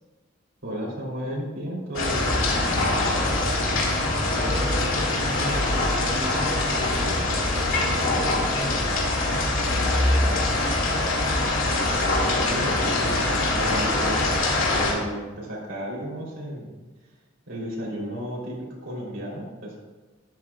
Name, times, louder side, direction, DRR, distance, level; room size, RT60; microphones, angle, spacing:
voice 1, 0.6-3.3 12.0-16.8 17.5-19.8, equal, 65° right, -5 dB, 3.5 m, -34 dB
sound 1, 1.9-14.9, left 2 dB, 80° left, 2.2 m, -23 dB
voice 2, 4.1-8.8 9.5-10.5, left 1 dB, 35° right, -8 dB, 2.7 m, -37 dB
12.5 x 11.0 x 2.4 m, 1.3 s
head